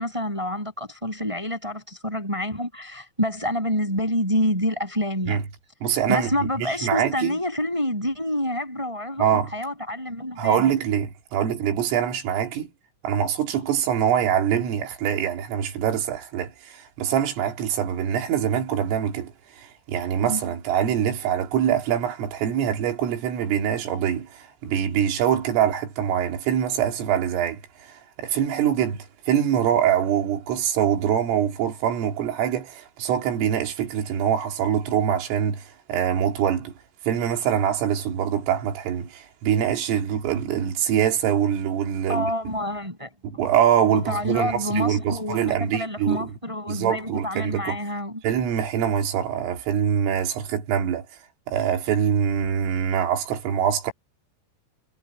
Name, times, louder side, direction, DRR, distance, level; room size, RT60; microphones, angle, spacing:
voice 1, 0.0-5.4 6.1-10.7 20.3-20.4 42.1-43.1 43.9-48.2, left 1 dB, 5° right, 7.0 m, -27 dB
voice 2, 5.8-6.3 6.6-7.4 9.2-9.5 10.4-12.7 13.0-36.7 37.1-42.3 43.2-46.3 46.7-47.8 48.2-51.1 51.5-53.9, right 9 dB, 80° right, 5.6 m, -24 dB
omnidirectional pair, 5.8 m